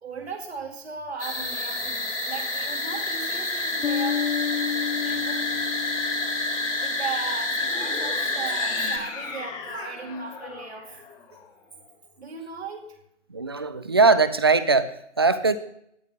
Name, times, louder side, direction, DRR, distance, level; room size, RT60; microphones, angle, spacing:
voice 1, 0.0-4.4 5.0-5.5 6.8-11.0 11.3-11.4 12.2-12.8, right 5 dB, 55° right, 1 dB, 2.6 m, -37 dB
sound 1, 1.2-9.0, left 2 dB, 80° left, 3.8 m, -28 dB
Bass guitar, 3.8-7.3, left 8 dB, 60° left, 0.5 m, -30 dB
sound 2, 7.6-12.0, left 5 dB, 10° left, 1.4 m, -39 dB
voice 2, 13.3-15.6, right 4 dB, 20° right, 14 dB, 0.5 m, -21 dB
18.0 x 12.0 x 3.6 m, 0.74 s
figure-of-eight pair, 140°, 37 cm